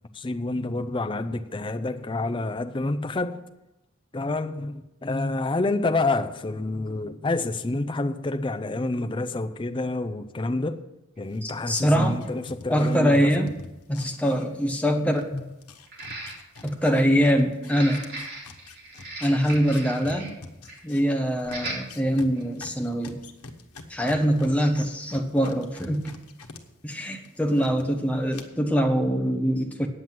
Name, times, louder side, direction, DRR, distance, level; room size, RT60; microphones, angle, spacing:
voice 1, 0.1-3.4 4.1-10.8 11.2-13.5 15.3-15.4, left 2 dB, 20° left, 0.5 m, -28 dB
sound 1, 11.2-11.3 12.2-12.3 12.8-12.9 15.9-16.7 17.6-20.3 20.6-20.8 21.4-21.8 22.3-22.5, right 2 dB, 45° right, 3.0 m, -38 dB
sound 2, 11.3-14.9 15.1-26.6 26.9-27.8 28.3-28.4, left 3 dB, 90° left, 1.2 m, -45 dB
voice 2, 11.4-12.2 12.7-13.5 13.9-15.2 16.6-18.0 19.2-20.4 20.8-23.2 23.9-26.1 26.8-29.9, equal, 5° left, 1.0 m, -23 dB
9.4 x 7.7 x 7.5 m
head